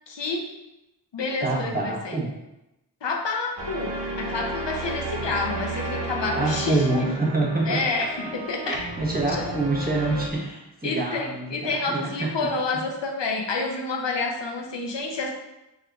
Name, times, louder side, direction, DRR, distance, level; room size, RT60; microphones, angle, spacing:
voice 1, 0.1-0.5 1.1-2.2 3.0-7.1 7.7-8.8 9.3-9.6 10.8-15.3, left 3 dB, 75° left, 1 dB, 0.7 m, -29 dB
voice 2, 1.4-2.3 5.2-5.3 6.3-8.1 8.6-12.6, right 2 dB, 20° right, -3 dB, 1.0 m, -27 dB
sound 1, 3.6-10.3, right 2 dB, 70° right, 0.7 m, -33 dB
3.6 x 3.5 x 2.3 m, 0.92 s
wide cardioid pair, 40°, 43 cm